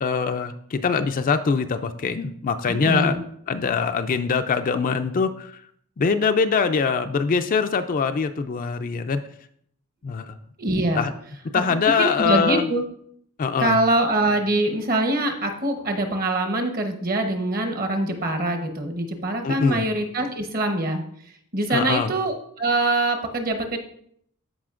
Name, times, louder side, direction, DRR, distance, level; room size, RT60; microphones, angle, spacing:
voice 1, 0.0-3.2 3.5-5.6 6.0-9.2 10.0-10.3 11.0-11.1 11.5-12.7 13.4-13.8 19.4-19.9 21.7-22.1, left 5 dB, 40° left, 8 dB, 0.4 m, -23 dB
voice 2, 2.7-3.2 10.6-11.0 11.5-12.8 13.6-21.0 21.5-23.8, right 2 dB, 40° right, 5 dB, 1.0 m, -24 dB
13.5 x 5.0 x 2.5 m, 0.66 s
head